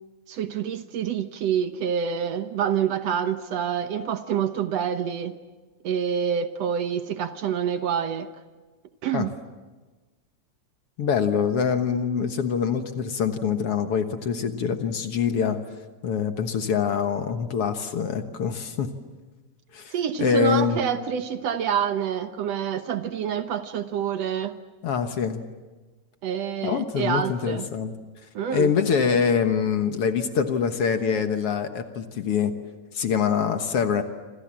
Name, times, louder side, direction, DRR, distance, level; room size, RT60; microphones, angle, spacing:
voice 1, 0.3-5.3 5.8-8.3 9.0-9.3 19.9-24.6 26.2-27.7 28.4-28.7, right 8 dB, 65° right, 9 dB, 2.0 m, -27 dB
voice 2, 11.0-15.6 16.0-18.9 19.7-20.8 24.8-25.4 26.6-27.9 28.5-32.5 32.9-34.0, left 6 dB, 55° left, 7 dB, 2.1 m, -24 dB
27.5 x 26.5 x 7.5 m, 1.3 s
omnidirectional pair, 3.4 m